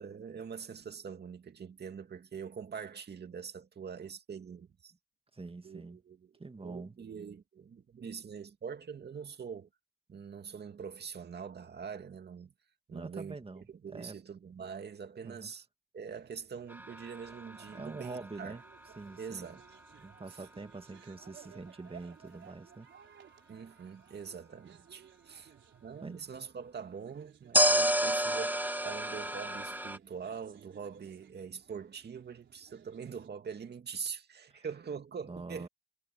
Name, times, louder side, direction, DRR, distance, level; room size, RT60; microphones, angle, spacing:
voice 1, 0.0-4.9 5.6-6.3 6.6-9.7 10.1-12.5 12.9-13.4 13.7-15.7 15.9-18.5 19.2-19.6 20.3-20.4 23.5-25.5 25.8-35.7, right 6 dB, 60° right, 2.4 m, -44 dB
voice 2, 5.3-6.0 6.4-6.9 12.9-14.2 15.2-15.5 17.7-18.6 19.0-19.6 20.0-22.9 25.3-25.5 26.0-26.2 34.5-34.6 35.3-35.7, right 3 dB, 30° right, 1.9 m, -45 dB
sound 1, 16.1-33.3, right 9 dB, 85° right, 4.0 m, -60 dB
sound 2, 16.7-19.7 27.5-30.0, right 1 dB, 10° right, 1.8 m, -31 dB
cardioid pair, 65°, 19 cm